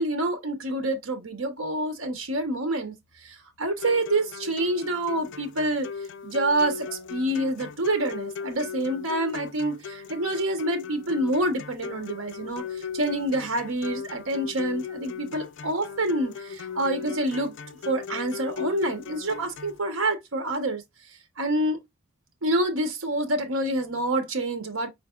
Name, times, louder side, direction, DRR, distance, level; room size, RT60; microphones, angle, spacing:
voice 1, 0.0-2.9 3.2-5.9 6.2-17.5 17.9-20.8 21.4-21.8 22.4-24.9, right 1 dB, 90° right, 1.0 m, -27 dB
sound 1, 3.8-19.8, left 6 dB, 60° left, 0.5 m, -37 dB
5.2 x 4.1 x 2.4 m
head